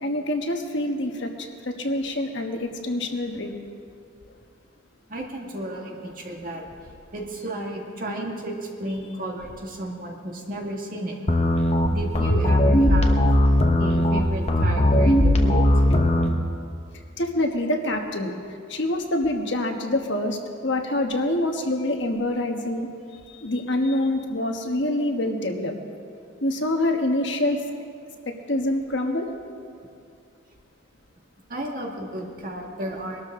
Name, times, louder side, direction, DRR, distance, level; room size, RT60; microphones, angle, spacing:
voice 1, 0.0-1.3 1.6-3.6 15.9-16.0 17.2-18.3 18.7-22.9 23.3-25.7 26.4-27.6 28.5-29.3, left 1 dB, 60° left, 3 dB, 1.3 m, -26 dB
voice 2, 5.1-6.6 7.1-11.2 11.6-13.2 13.8-15.6 31.5-33.2, right 1 dB, 45° right, 0 dB, 1.8 m, -33 dB
sound 1, 11.3-16.3, left 1 dB, 30° left, 1.0 m, -18 dB
22.5 x 12.5 x 3.8 m, 2.3 s
head